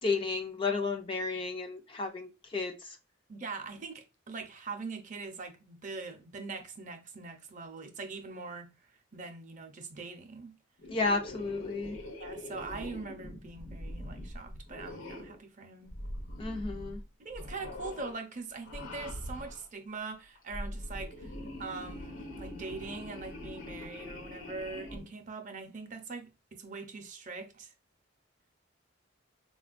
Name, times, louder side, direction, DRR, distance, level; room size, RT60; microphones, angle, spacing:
voice 1, 0.0-3.0 10.9-12.0 16.4-17.0, left 4 dB, 25° left, 0.3 m, -32 dB
voice 2, 3.3-8.7 9.1-10.5 12.2-15.9 17.2-21.3 21.6-27.7, right 4 dB, 40° right, 0.5 m, -42 dB
sound 1, 10.8-15.4 15.9-17.0 17.3-18.1 18.6-19.6 20.3-25.0, left 1 dB, 85° left, 1.0 m, -43 dB
4.0 x 2.2 x 2.4 m
head